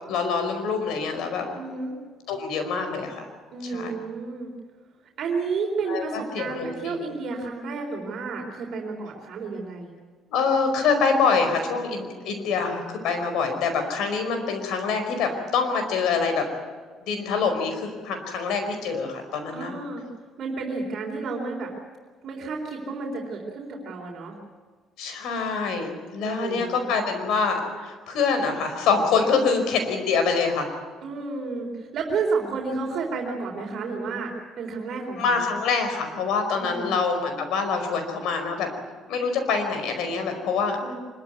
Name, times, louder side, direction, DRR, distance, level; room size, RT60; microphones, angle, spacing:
voice 1, 0.1-1.5 2.3-3.3 3.7-3.9 5.9-7.0 10.3-16.4 17.1-19.7 25.0-30.7 35.1-38.7 39.1-40.8, left 5 dB, 80° left, 6 dB, 4.9 m, -25 dB
voice 2, 1.5-1.9 3.5-4.5 5.2-9.9 19.5-20.0 20.4-21.7 22.2-24.4 26.2-27.0 31.0-34.3 34.6-35.5 36.6-36.9 40.8-40.9, right 4 dB, 55° right, 0 dB, 3.9 m, -31 dB
25.5 x 13.5 x 9.6 m, 1.5 s
cardioid pair, 115°, 0 cm